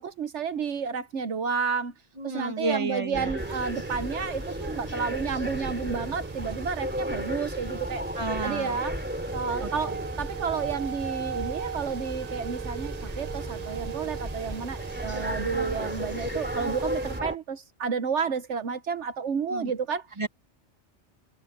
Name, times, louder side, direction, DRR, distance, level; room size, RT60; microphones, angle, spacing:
voice 1, 0.0-1.9 2.2-8.0 8.4-9.0 9.3-20.1, right 6 dB, 75° right, 1.2 m, -31 dB
voice 2, 2.2-3.3 8.2-8.8 9.6-10.0 19.5-19.7 20.2-20.3, right 3 dB, 25° right, 1.9 m, -31 dB
sound 1, 3.1-17.4, equal, 10° right, 3.0 m, -34 dB
sound 2, 3.4-17.2, right 8 dB, 45° right, 0.6 m, -40 dB
omnidirectional pair, 1.2 m